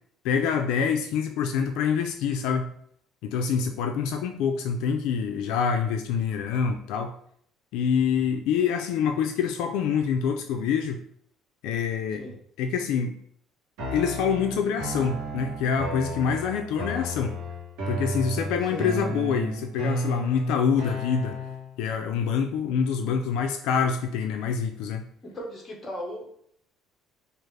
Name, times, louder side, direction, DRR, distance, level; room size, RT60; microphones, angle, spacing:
voice 1, 0.2-2.7 3.2-7.1 7.7-11.0 11.6-12.2 12.6-13.2 13.9-17.4 17.9-21.4 21.8-25.1, left 6 dB, 75° left, 5 dB, 0.4 m, -26 dB
sound 1, 13.8-21.8, equal, 60° right, 1.1 m, -33 dB
voice 2, 25.2-26.3, left 1 dB, 20° left, -1 dB, 0.9 m, -37 dB
4.9 x 2.4 x 3.2 m, 0.66 s
cardioid pair, 175°, 0 cm